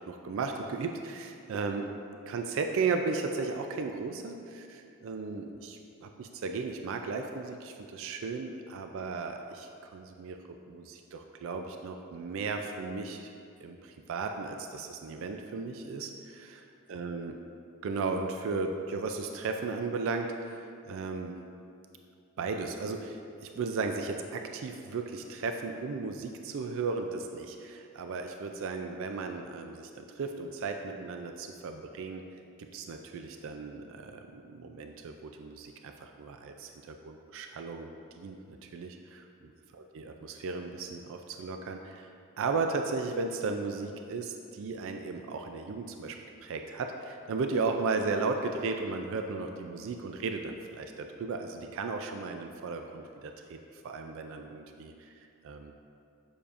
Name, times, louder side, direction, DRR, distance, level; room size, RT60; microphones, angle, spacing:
voice 1, 0.1-1.9 2.3-10.4 10.7-13.3 13.6-17.3 17.8-21.4 22.4-32.2 32.7-39.3 39.9-55.7, right 4 dB, 60° right, 5 dB, 0.3 m, -35 dB
6.9 x 6.8 x 2.5 m, 2.5 s
head